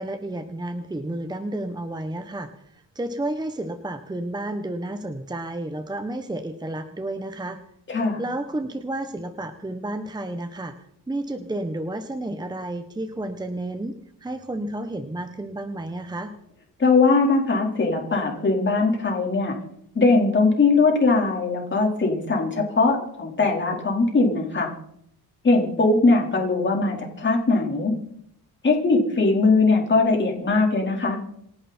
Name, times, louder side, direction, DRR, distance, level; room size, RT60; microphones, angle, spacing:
voice 1, 0.0-7.6 8.2-10.7 11.1-16.3, right 1 dB, 10° right, 8 dB, 1.1 m, -31 dB
voice 2, 7.9-8.2 16.8-19.6 19.9-24.7 25.4-27.9 28.6-31.2, left 3 dB, 30° left, 0 dB, 4.5 m, -20 dB
27.5 x 11.5 x 4.5 m, 0.72 s
cardioid pair, 145°, 40 cm